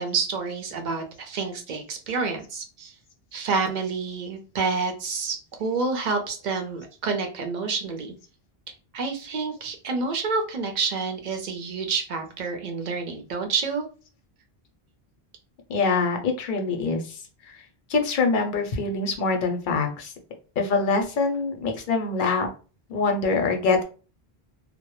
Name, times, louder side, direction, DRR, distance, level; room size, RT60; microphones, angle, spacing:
voice 1, 0.0-2.9 3.3-8.1 8.9-13.8, right 4 dB, 55° right, 5 dB, 0.6 m, -28 dB
voice 2, 15.7-17.6 17.9-20.1 20.6-22.5 22.9-23.8, left 4 dB, 60° left, 4 dB, 0.6 m, -24 dB
2.1 x 2.0 x 2.9 m, 0.36 s
omnidirectional pair, 1.1 m